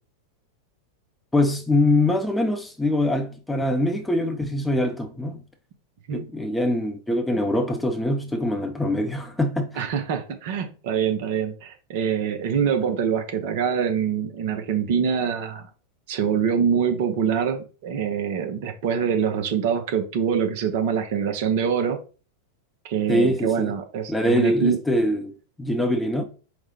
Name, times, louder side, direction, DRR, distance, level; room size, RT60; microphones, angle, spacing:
voice 1, 1.3-5.4 6.1-9.8 23.1-23.7 24.1-25.3 25.6-26.2, left 1 dB, 5° left, 0.6 m, -23 dB
voice 2, 9.8-15.7 16.1-22.0 22.9-24.8, right 7 dB, 50° right, 0.6 m, -24 dB
4.7 x 2.1 x 3.6 m
figure-of-eight pair, 90°, 0 cm